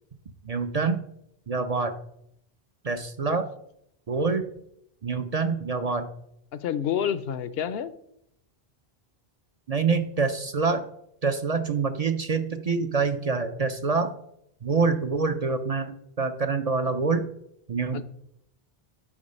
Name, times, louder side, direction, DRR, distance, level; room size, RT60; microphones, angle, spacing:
voice 1, 0.4-1.0 1.5-1.9 2.8-3.5 4.1-4.4 5.0-6.1 9.7-10.8 11.2-14.1 14.6-17.2 17.7-18.0, right 4 dB, 45° right, 8 dB, 0.5 m, -26 dB
voice 2, 6.5-7.9 17.9-18.0, left 9 dB, 75° left, 14 dB, 0.8 m, -28 dB
8.7 x 4.6 x 5.4 m, 0.76 s
omnidirectional pair, 1.0 m